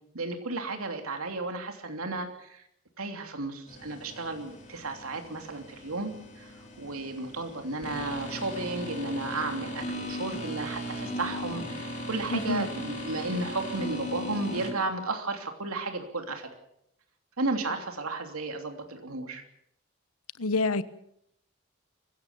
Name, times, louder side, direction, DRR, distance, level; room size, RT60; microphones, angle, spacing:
voice 1, 0.1-2.6 3.0-16.5 17.4-19.4, right 3 dB, 90° right, 5 dB, 3.1 m, -34 dB
sound 1, 3.7-14.7, equal, 35° left, 4.3 m, -38 dB
voice 2, 12.3-12.7 20.4-20.8, left 3 dB, 90° left, 15 dB, 1.1 m, -27 dB
24.5 x 16.0 x 7.2 m, 0.75 s
head